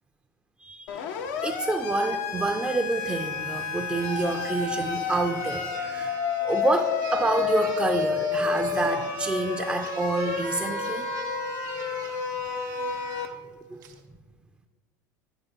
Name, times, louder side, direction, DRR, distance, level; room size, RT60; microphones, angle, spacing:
voice 1, 0.6-1.1 1.4-6.1 6.4-11.1 13.7-13.8, right 3 dB, 10° right, 4 dB, 0.4 m, -28 dB
Siren, 0.9-13.3, left 6 dB, 70° left, 0.6 m, -30 dB
sound 1, 2.5-2.6 3.0-13.3 13.8-14.0, right 6 dB, 85° right, 0.7 m, -40 dB
9.1 x 3.3 x 4.0 m, 1.4 s
hypercardioid pair, 90°, 10 cm